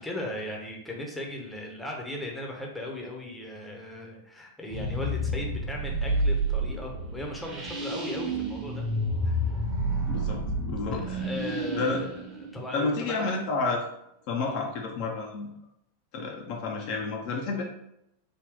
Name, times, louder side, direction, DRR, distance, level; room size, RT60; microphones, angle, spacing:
voice 1, 0.0-8.8 9.2-9.6 10.9-13.4 14.4-14.6, left 1 dB, 5° left, -1 dB, 0.7 m, -38 dB
sound 1, 4.7-13.3, right 1 dB, 25° right, 0.9 m, -30 dB
voice 2, 10.1-11.2 11.7-12.0 12.7-13.8 14.3-15.5 16.1-17.6, left 3 dB, 45° left, 0 dB, 0.5 m, -30 dB
3.4 x 2.2 x 3.7 m, 0.80 s
figure-of-eight pair, 90°, 0 cm